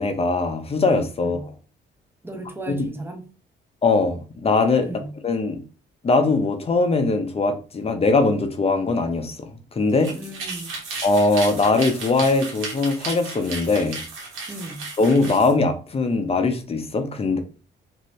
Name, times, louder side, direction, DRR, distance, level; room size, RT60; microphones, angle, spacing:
voice 1, 0.0-1.4 2.7-2.9 3.8-4.9 5.2-5.6 6.0-10.1 11.0-14.0 15.0-17.4, left 3 dB, 30° left, 0.6 m, -21 dB
voice 2, 2.2-3.3 4.8-5.1 10.1-10.7 14.5-14.9, right 2 dB, 10° right, 0.8 m, -36 dB
sound 1, 9.9-15.5, right 3 dB, 90° right, 1.1 m, -34 dB
2.7 x 2.5 x 3.1 m
cardioid pair, 90°, 20 cm